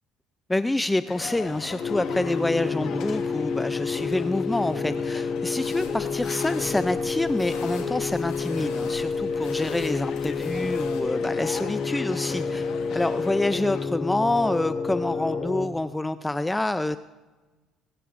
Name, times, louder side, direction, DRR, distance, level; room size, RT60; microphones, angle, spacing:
voice 1, 0.5-17.0, left 2 dB, 10° left, 13 dB, 0.4 m, -27 dB
sound 1, 1.1-13.9, left 7 dB, 60° left, 1.3 m, -40 dB
sound 2, 1.8-15.7, left 5 dB, 45° left, 2.8 m, -29 dB
sound 3, 5.6-11.0, left 7 dB, 85° left, 2.1 m, -45 dB
25.0 x 10.0 x 2.5 m, 1.2 s
supercardioid pair, 85°, 0 cm